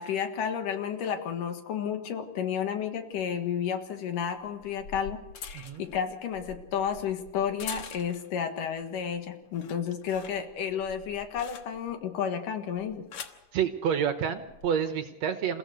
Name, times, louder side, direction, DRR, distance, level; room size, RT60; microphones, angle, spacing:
voice 1, 0.0-13.1, left 8 dB, 75° left, 6 dB, 3.2 m, -32 dB
sound 1, 3.2-3.3 4.4-8.4 8.8-9.2 9.5-12.0 12.8-13.5 14.4-14.7, left 6 dB, 55° left, 1.8 m, -45 dB
voice 2, 13.5-15.6, right 8 dB, 65° right, 8 dB, 2.0 m, -28 dB
28.5 x 15.5 x 6.5 m, 0.96 s
omnidirectional pair, 3.8 m